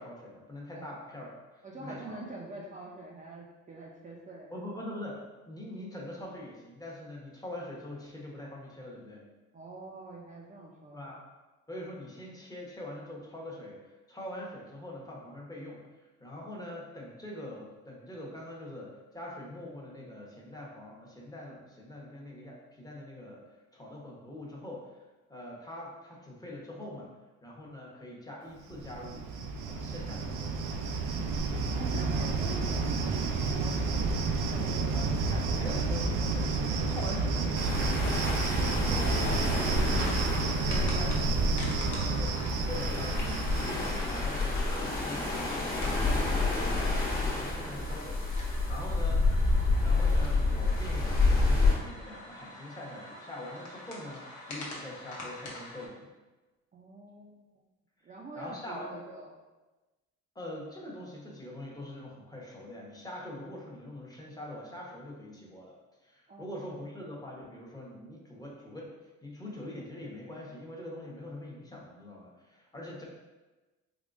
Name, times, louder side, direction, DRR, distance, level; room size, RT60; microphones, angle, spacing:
voice 1, 0.0-2.2 4.5-5.2 5.5-9.2 10.9-11.2 11.7-15.9 16.2-23.4 23.7-25.0 25.3-27.1 27.4-29.3 29.7-30.8 34.9-38.2 40.4-41.6 42.1-42.3 42.7-48.2 48.5-49.2 49.8-56.1 58.3-59.0 60.3-65.7 66.0-68.9 69.2-73.0, left 1 dB, 10° left, -3 dB, 0.9 m, -43 dB
voice 2, 1.6-4.6 9.5-11.0 31.7-34.3 34.5-35.9 38.6-42.5 47.4-47.9 56.7-57.5 58.0-59.4 66.3-66.9, right 2 dB, 25° right, -4 dB, 0.4 m, -45 dB
Cricket, 28.7-44.4, right 3 dB, 90° right, 0.5 m, -30 dB
sound 1, 37.5-51.7, left 3 dB, 30° left, 1.1 m, -29 dB
sound 2, 39.6-55.9, left 1 dB, 70° left, 0.9 m, -45 dB
3.5 x 3.0 x 2.5 m, 1.2 s
cardioid pair, 90°, 30 cm